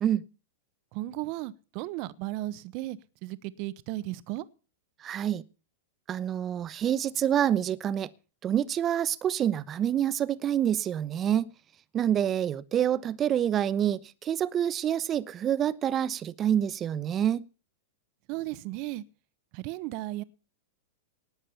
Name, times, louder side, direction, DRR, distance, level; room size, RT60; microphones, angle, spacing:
voice 1, 0.9-4.5 18.3-19.0 19.5-20.2, right 17 dB, 50° right, 1.0 m, -35 dB
voice 2, 5.0-5.4 6.1-8.1 8.4-11.5 11.9-17.4, right 10 dB, 30° right, 0.9 m, -27 dB
19.0 x 7.3 x 7.1 m
hypercardioid pair, 105°, 0 cm